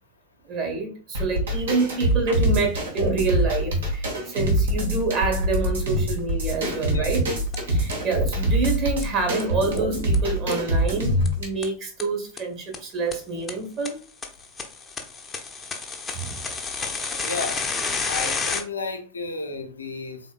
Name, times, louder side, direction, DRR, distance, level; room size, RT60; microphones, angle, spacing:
voice 1, 0.5-7.2 7.7-14.0 16.1-16.4, right 4 dB, 35° right, 1 dB, 1.4 m, -27 dB
sound 1, 1.1-11.4, right 1 dB, 65° right, 1.2 m, -24 dB
sound 2, 7.5-7.6 7.9-8.0 8.3-8.4 8.6-8.7 9.0-9.1 9.4-9.5 9.8-9.9 10.1-10.2 10.5-10.6 10.9-11.0 11.2-11.3 11.6-11.7 12.0-12.1 12.4-12.5 12.7-12.8 13.1-13.2 13.5-13.6 13.8-13.9 14.2-18.6, left 4 dB, 15° left, 0.6 m, -29 dB
voice 2, 17.1-17.6 18.1-20.2, left 3 dB, 75° left, 5 dB, 0.6 m, -33 dB
4.0 x 3.4 x 2.3 m, 0.38 s
figure-of-eight pair, 90°, 0 cm